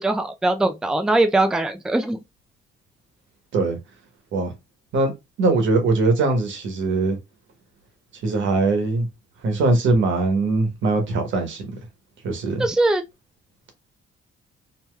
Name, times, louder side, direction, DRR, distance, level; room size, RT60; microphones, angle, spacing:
voice 1, 0.0-2.2 12.6-13.0, right 2 dB, 5° right, 0.4 m, -21 dB
voice 2, 5.4-7.2 8.2-9.1 9.4-11.7 12.2-12.7, right 3 dB, 75° right, 1.1 m, -21 dB
3.1 x 2.8 x 2.3 m
cardioid pair, 90°, 20 cm